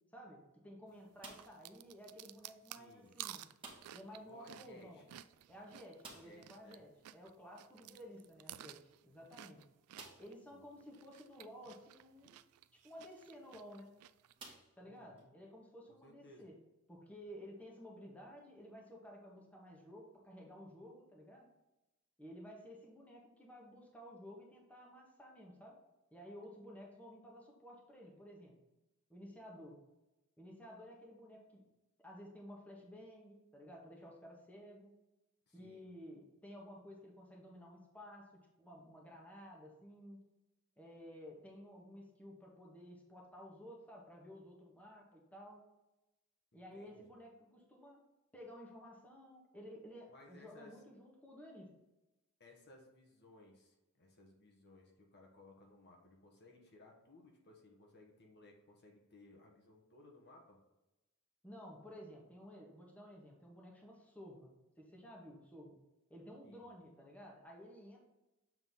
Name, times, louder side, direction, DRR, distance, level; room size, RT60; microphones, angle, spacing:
voice 1, 0.1-3.4 3.9-5.0 5.5-8.8 9.0-9.6 10.2-12.4 12.8-13.9 14.8-16.5 16.9-21.5 22.2-25.8 26.1-28.5 29.1-29.8 30.4-31.6 32.0-34.9 35.5-38.3 38.6-40.2 40.8-45.6 46.5-48.0 48.3-51.8 61.4-65.7 66.1-68.0, equal, 5° left, -2 dB, 1.3 m, -54 dB
sound 1, 1.2-1.7 3.6-4.1 4.4-4.5 4.8-4.9 6.0-6.5 8.3-8.4 9.0-9.1 9.9-10.4 11.2-11.3 13.3-13.5 14.4-15.3, right 3 dB, 25° right, 1.4 m, -55 dB
sound 2, 1.3-6.8 7.0-10.4 10.8-14.3, right 13 dB, 85° right, 0.3 m, -53 dB
voice 2, 2.8-3.2 4.2-5.1 6.0-6.8 7.8-7.9 10.4-10.6 14.8-15.3 15.9-16.5 35.5-35.8 46.5-47.0 50.1-50.8 52.4-60.6 66.4-66.7, left 2 dB, 50° left, 0 dB, 1.3 m, -61 dB
7.2 x 3.9 x 3.9 m, 0.98 s
head